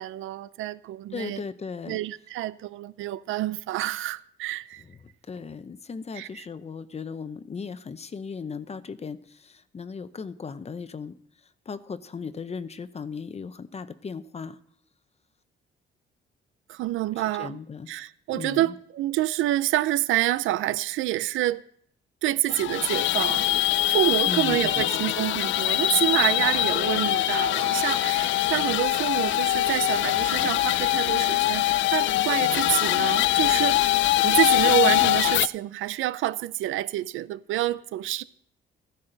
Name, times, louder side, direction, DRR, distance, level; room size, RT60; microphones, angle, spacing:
voice 1, 0.0-1.4 1.9-4.8 6.2-6.4 16.7-17.6 17.9-21.6 22.2-23.6 23.9-33.8 34.2-38.2, right 15 dB, 85° right, 0.5 m, -27 dB
voice 2, 1.1-2.0 4.8-11.2 11.7-14.6 17.4-17.9 18.3-18.7 24.2-24.9, left 5 dB, 30° left, 0.8 m, -37 dB
sound 1, 22.5-35.5, left 15 dB, 70° left, 0.4 m, -23 dB
15.0 x 9.8 x 3.9 m
cardioid pair, 90°, 20 cm